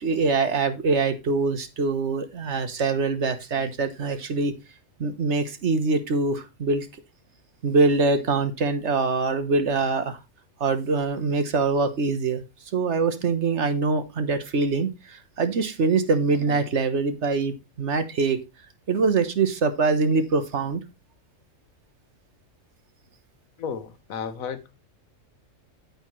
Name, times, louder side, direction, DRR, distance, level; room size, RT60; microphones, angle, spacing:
voice 1, 0.0-4.5 5.0-6.9 7.6-10.2 10.6-12.4 12.7-18.4 18.9-20.8, right 4 dB, 60° right, 1.3 m, -24 dB
voice 2, 23.6-24.7, left 7 dB, 85° left, 1.4 m, -33 dB
9.1 x 8.2 x 3.1 m
omnidirectional pair, 1.4 m